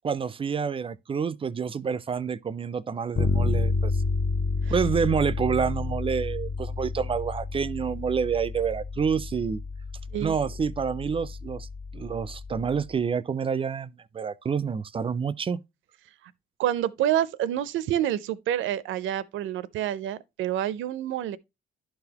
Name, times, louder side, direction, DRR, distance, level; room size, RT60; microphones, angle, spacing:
voice 1, 0.0-3.9 4.7-9.6 10.2-11.7 11.9-15.6, right 6 dB, 25° right, 0.3 m, -28 dB
Bass guitar, 3.2-12.9, left 3 dB, 30° left, 0.5 m, -30 dB
voice 2, 16.6-21.4, right 11 dB, 80° right, 0.5 m, -28 dB
11.5 x 4.0 x 2.8 m
cardioid pair, 90°, 20 cm